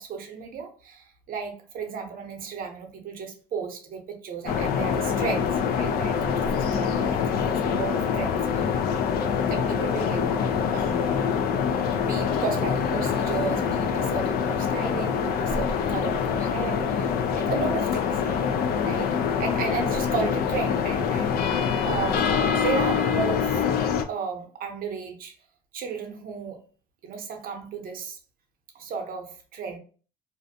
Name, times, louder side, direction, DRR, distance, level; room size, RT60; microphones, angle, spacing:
voice 1, 0.0-8.7 9.5-10.3 10.7-11.2 12.0-18.5 18.8-19.1 19.4-21.4 21.8-23.6 24.1-25.3 25.7-26.6 27.0-28.2 28.7-29.8, right 5 dB, 60° right, 0.7 m, -34 dB
sound 1, 4.5-24.0, left 7 dB, 65° left, 0.4 m, -25 dB
sound 2, 7.1-15.1, left 3 dB, 20° left, 0.6 m, -40 dB
2.5 x 2.1 x 2.6 m
cardioid pair, 110°, 17 cm